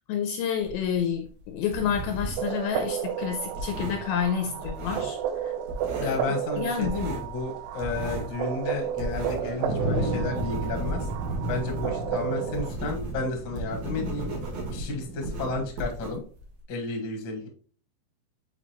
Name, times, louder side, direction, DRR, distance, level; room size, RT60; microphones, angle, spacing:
voice 1, 0.1-5.2 5.4-5.5 6.0-6.2 6.6-7.0, left 7 dB, 80° left, 4 dB, 2.3 m, -29 dB
sound 1, 0.6-2.5 2.8-5.4 5.6-6.2 6.5-9.6 9.9-16.6, right 1 dB, 55° right, 1.9 m, -35 dB
sound 2, 2.4-12.7, right 9 dB, 85° right, 2.8 m, -33 dB
sound 3, 2.7-2.8 5.3-5.4 5.8-5.9 7.5-15.7, right 1 dB, 35° left, 1.4 m, -35 dB
voice 2, 6.0-11.1 11.5-14.3 14.7-16.2 16.7-17.5, left 3 dB, 50° left, 1 dB, 1.4 m, -32 dB
7.5 x 5.0 x 3.0 m, 0.42 s
omnidirectional pair, 4.9 m